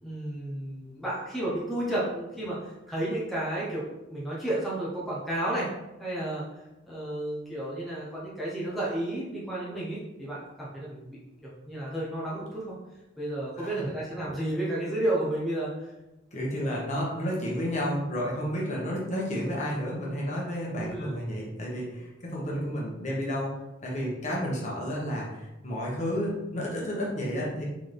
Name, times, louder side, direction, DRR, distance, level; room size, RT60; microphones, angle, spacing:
voice 1, 0.0-5.7 6.0-6.4 6.8-12.7 13.2-15.9 20.8-21.1 22.4-22.7, right 1 dB, ahead, -8 dB, 0.9 m, -32 dB
voice 2, 16.3-23.5 23.8-27.6, equal, 40° left, -4 dB, 1.3 m, -31 dB
3.9 x 3.8 x 3.4 m, 1.0 s
head